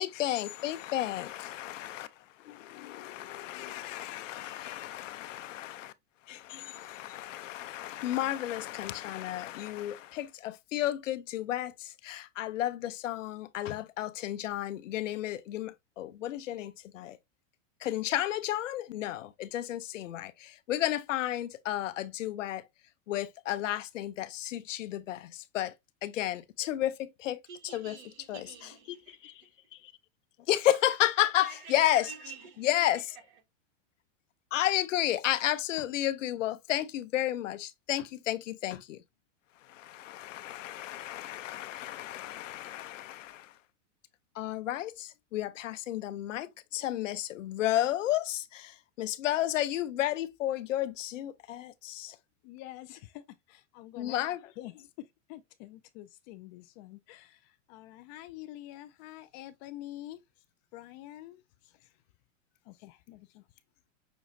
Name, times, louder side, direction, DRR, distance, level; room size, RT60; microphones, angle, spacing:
voice 1, 0.0-2.1 2.4-5.9 6.3-17.2 17.8-22.6 23.1-25.7 26.0-27.4 27.7-27.9 28.3-28.4 29.2-29.3 29.8-29.9 30.5-32.1 32.6-33.1 34.5-39.0 39.7-43.5 44.4-52.2 54.0-54.4, left 13 dB, 85° left, 0.8 m, -32 dB
voice 2, 0.7-4.9 52.4-54.2 54.6-60.2 60.7-61.9 62.6-63.5, left 15 dB, 40° left, 0.4 m, -48 dB
voice 3, 27.5-29.6 30.5-32.9 33.3-33.4, right 5 dB, 50° right, 1.7 m, -48 dB
6.3 x 3.0 x 2.6 m
supercardioid pair, 135°, 37 cm